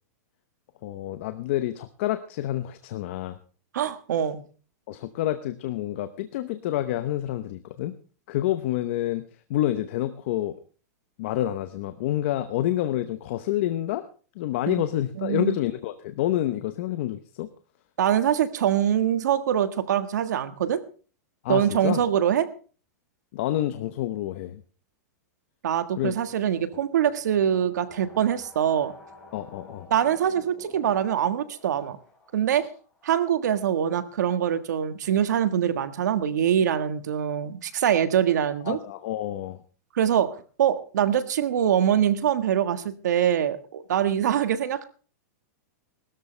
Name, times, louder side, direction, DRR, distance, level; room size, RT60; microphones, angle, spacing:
voice 1, 0.8-3.4 4.9-8.0 8.3-10.6 11.2-14.0 14.3-17.5 21.4-22.0 23.3-24.6 26.0-26.2 29.3-29.9 38.7-39.6, left 13 dB, 45° left, 11 dB, 0.9 m, -28 dB
voice 2, 3.7-4.4 14.7-14.8 15.2-15.6 18.0-20.8 21.5-22.5 25.6-28.9 29.9-32.0 32.3-32.7 33.0-38.8 39.9-44.8, right 9 dB, 85° right, 11 dB, 1.6 m, -24 dB
sound 1, 25.7-34.0, left 2 dB, 10° left, 4.1 m, -51 dB
21.0 x 13.0 x 3.3 m, 0.38 s
supercardioid pair, 175°, 9 cm